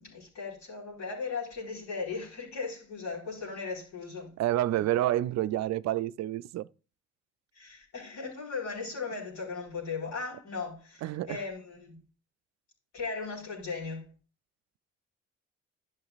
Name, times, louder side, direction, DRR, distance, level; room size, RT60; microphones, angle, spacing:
voice 1, 0.0-4.3 7.6-12.0 12.9-14.1, left 4 dB, 65° left, 4.4 m, -37 dB
voice 2, 4.4-6.7 11.0-11.4, right 14 dB, 60° right, 0.5 m, -28 dB
12.0 x 5.7 x 2.4 m
hypercardioid pair, 50°, 30 cm